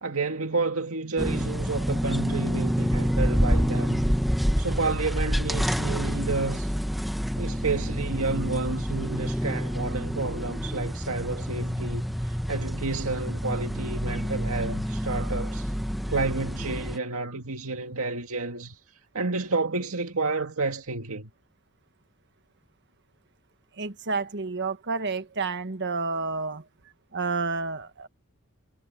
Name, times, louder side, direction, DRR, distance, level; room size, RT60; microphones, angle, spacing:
voice 1, 0.0-4.0 4.6-6.7 7.4-15.7 16.1-18.8 19.1-21.3, right 3 dB, 85° right, 2.1 m, -30 dB
sound 1, 1.2-17.0, equal, ahead, 1.2 m, -28 dB
voice 2, 23.8-26.6 27.1-28.1, right 4 dB, 55° right, 1.5 m, -30 dB
head